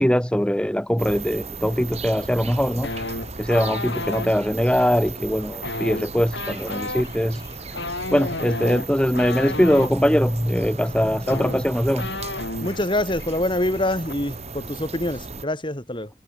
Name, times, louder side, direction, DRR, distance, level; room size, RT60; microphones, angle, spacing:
voice 1, 0.0-2.9 3.4-7.4 8.1-12.1, equal, 5° left, 1.9 m, -21 dB
sound 1, 1.0-15.5, right 3 dB, 35° right, 5.5 m, -37 dB
sound 2, 2.8-4.3 5.5-9.9 10.9-11.0 11.2-12.8 13.1-13.4 13.6-14.1, left 2 dB, 65° left, 7.3 m, -32 dB
voice 2, 12.6-16.1, left 1 dB, 25° left, 4.5 m, -25 dB
head